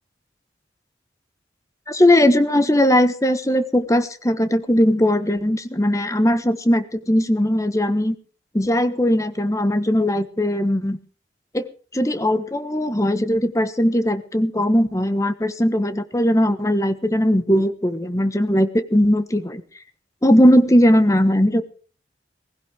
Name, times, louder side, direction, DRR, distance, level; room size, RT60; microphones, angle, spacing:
voice 1, 1.9-8.2 8.5-11.0 11.5-11.7 11.9-19.6 20.2-21.6, equal, 20° left, 11 dB, 1.2 m, -19 dB
19.5 x 16.0 x 3.5 m, 0.39 s
head